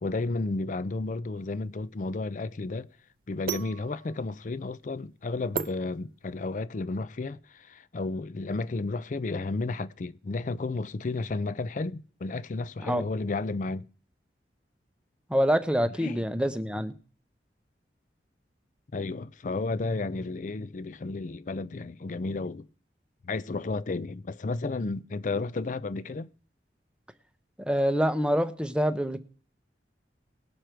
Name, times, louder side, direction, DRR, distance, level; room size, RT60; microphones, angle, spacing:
voice 1, 0.0-2.9 3.3-13.9 16.0-16.3 18.9-22.7 23.2-26.3, left 3 dB, 45° left, 0.4 m, -32 dB
sound 1, 1.4-6.6, right 6 dB, 50° right, 0.4 m, -38 dB
voice 2, 15.3-16.9 27.7-29.2, equal, 5° right, 0.7 m, -26 dB
19.5 x 6.5 x 4.5 m
head